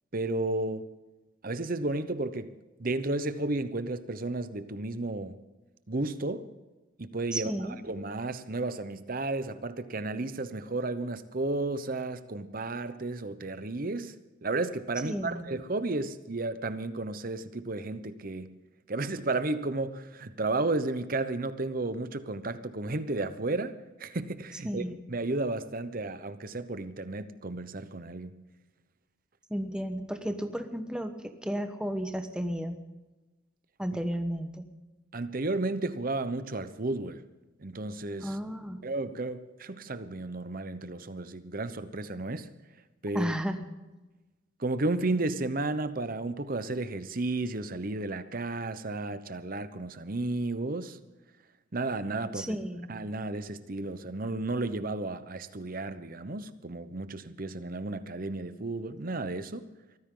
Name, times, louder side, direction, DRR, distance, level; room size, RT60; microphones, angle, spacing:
voice 1, 0.1-0.9 1.4-2.5 2.8-5.4 5.9-6.5 7.0-14.1 14.4-18.6 18.9-28.4 35.1-37.2 37.6-38.4 38.8-42.5 43.0-43.3 44.6-51.0 51.7-52.6 52.9-59.6, right 2 dB, 45° right, 0.9 m, -33 dB
voice 2, 7.3-7.8 15.0-15.5 24.6-24.9 29.5-32.8 33.8-34.7 38.2-38.8 43.1-43.6 52.3-52.9, equal, 5° right, 1.1 m, -33 dB
23.5 x 15.0 x 3.9 m
head